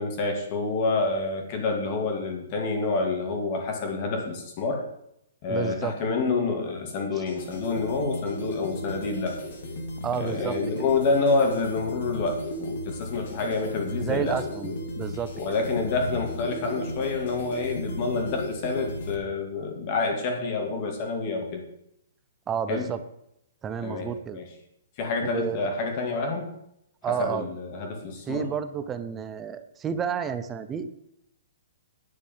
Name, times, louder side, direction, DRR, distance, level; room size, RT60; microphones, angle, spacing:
voice 1, 0.0-4.9 5.4-9.4 10.2-14.4 15.3-21.6 22.7-22.9 23.8-24.5 25.0-26.5 27.0-28.5, left 3 dB, 30° left, 3 dB, 2.5 m, -28 dB
voice 2, 5.5-5.9 7.1-7.2 10.0-10.6 14.0-15.3 22.5-23.0 23.6-24.4 25.2-25.7 27.0-27.5 28.3-30.9, right 7 dB, 10° right, 11 dB, 0.6 m, -30 dB
sound 1, 7.1-19.1, left 1 dB, 50° left, 2.8 m, -35 dB
10.5 x 7.0 x 7.5 m, 0.77 s
hypercardioid pair, 175°, 0 cm